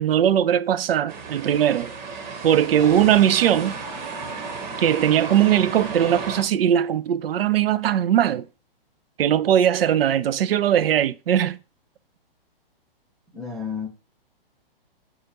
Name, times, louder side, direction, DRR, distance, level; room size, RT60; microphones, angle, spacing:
voice 1, 0.0-1.9 2.4-3.8 4.8-8.5 9.2-11.6, right 10 dB, 75° right, 0.5 m, -20 dB
sound 1, 1.1-6.4, right 4 dB, 50° right, 1.2 m, -33 dB
voice 2, 13.3-13.9, left 6 dB, ahead, 0.6 m, -31 dB
6.4 x 2.4 x 2.9 m
hypercardioid pair, 135°, 29 cm